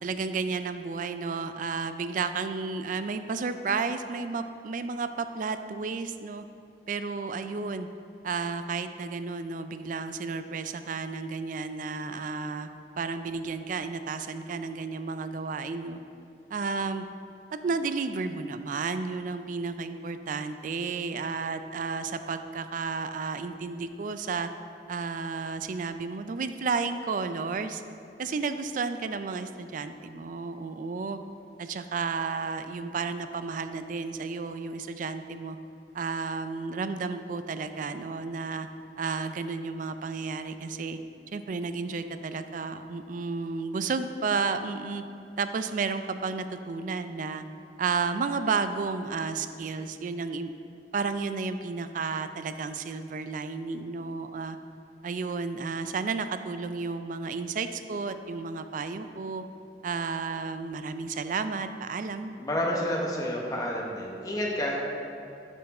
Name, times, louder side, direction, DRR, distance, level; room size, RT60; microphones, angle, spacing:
voice 1, 0.0-6.4 6.9-7.9 8.2-12.7 13.0-16.0 16.5-17.0 17.6-24.5 24.9-27.8 28.2-31.2 31.6-35.6 35.9-38.7 39.0-41.0 41.3-45.0 45.4-47.4 47.8-50.5 50.9-54.6 55.0-59.4 59.8-62.3, right 4 dB, 50° right, 10 dB, 0.4 m, -32 dB
voice 2, 62.4-64.8, left 1 dB, 20° left, -2 dB, 1.0 m, -29 dB
11.0 x 4.5 x 4.2 m, 2.5 s
head